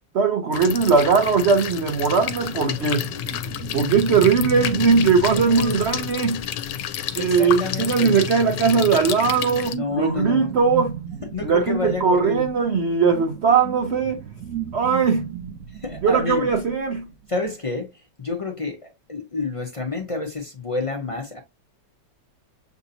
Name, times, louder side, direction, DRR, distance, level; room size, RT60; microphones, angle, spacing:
voice 1, 0.1-3.1 3.7-6.5 7.1-11.0 11.4-14.2 14.7-15.3 16.0-17.1, right 5 dB, 85° right, 0.6 m, -20 dB
sound 1, 0.5-9.7, left 9 dB, 75° left, 1.2 m, -30 dB
sound 2, 2.3-7.1 8.0-17.3, right 9 dB, 65° right, 0.9 m, -37 dB
voice 2, 5.3-5.8 7.2-8.1 9.7-10.5 11.3-12.5 15.7-16.5 17.3-17.9 18.2-21.4, left 3 dB, 60° left, 0.3 m, -29 dB
7.1 x 2.7 x 2.7 m
omnidirectional pair, 2.0 m